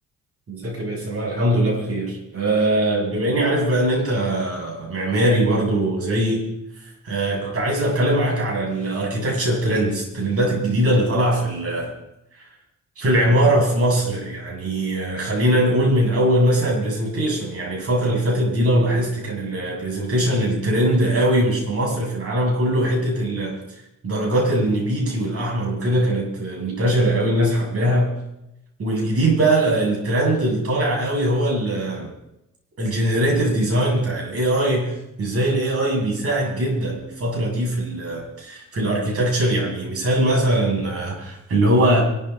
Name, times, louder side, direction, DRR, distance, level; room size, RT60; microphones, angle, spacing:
voice 1, 0.5-6.5 7.0-11.9 13.0-23.6 24.0-28.2 28.8-32.1 32.8-42.0, right 1 dB, 50° right, -1 dB, 8.0 m, -21 dB
24.5 x 13.0 x 4.3 m, 0.85 s
cardioid pair, 90°, 30 cm